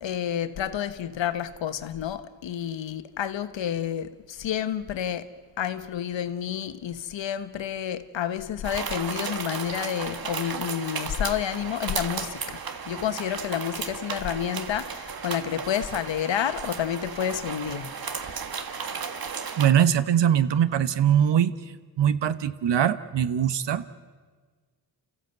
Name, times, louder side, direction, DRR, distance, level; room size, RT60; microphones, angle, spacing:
voice 1, 0.0-5.3 5.6-12.6 12.8-18.4, left 9 dB, 80° left, 1.3 m, -30 dB
sound 1, 8.6-19.7, right 6 dB, 50° right, 1.6 m, -34 dB
voice 2, 19.6-21.5 22.0-24.0, right 9 dB, 70° right, 1.1 m, -22 dB
29.0 x 15.0 x 8.0 m
cardioid pair, 70°, 44 cm